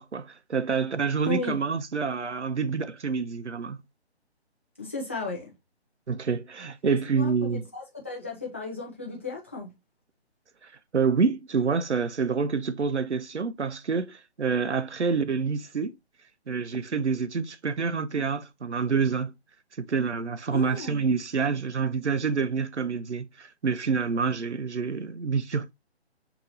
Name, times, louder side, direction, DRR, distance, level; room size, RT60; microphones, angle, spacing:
voice 1, 0.0-3.8 6.1-7.6 10.6-15.9 16.5-19.3 19.8-25.7, right 5 dB, 90° right, 0.6 m, -27 dB
voice 2, 1.2-1.6 4.8-5.5 7.2-9.7 20.5-21.0, left 2 dB, 10° left, 0.5 m, -35 dB
6.3 x 2.9 x 2.6 m
figure-of-eight pair, 140°, 33 cm